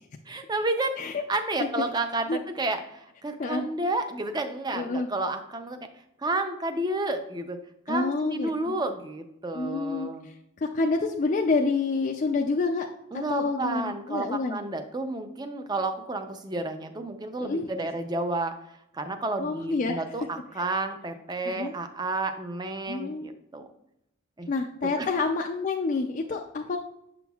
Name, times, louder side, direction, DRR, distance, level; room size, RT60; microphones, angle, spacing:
voice 1, 0.3-1.0 1.3-5.9 6.2-7.6 7.9-10.3 13.1-18.6 18.9-23.7 24.4-24.5 25.0-25.1, right 2 dB, 20° right, 8 dB, 0.5 m, -31 dB
voice 2, 4.7-5.1 7.9-8.8 9.5-12.9 13.1-14.6 17.4-17.7 19.4-20.0 20.6-20.7 21.5-21.7 22.9-23.3 24.5-26.8, left 3 dB, 35° left, 2 dB, 0.3 m, -28 dB
6.9 x 6.0 x 2.3 m, 0.81 s
head